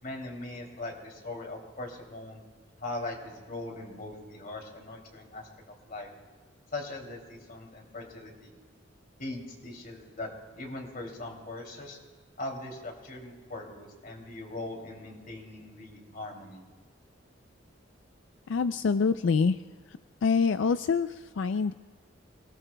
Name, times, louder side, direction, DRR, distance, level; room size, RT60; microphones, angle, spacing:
voice 1, 0.0-2.4 2.8-5.5 5.9-6.1 6.7-8.5 9.2-10.3 10.6-12.0 12.4-16.6, left 2 dB, 50° left, 1 dB, 2.8 m, -40 dB
voice 2, 18.5-19.6 20.2-21.7, left 5 dB, 85° left, 11 dB, 0.4 m, -25 dB
28.5 x 19.0 x 2.2 m, 1.4 s
head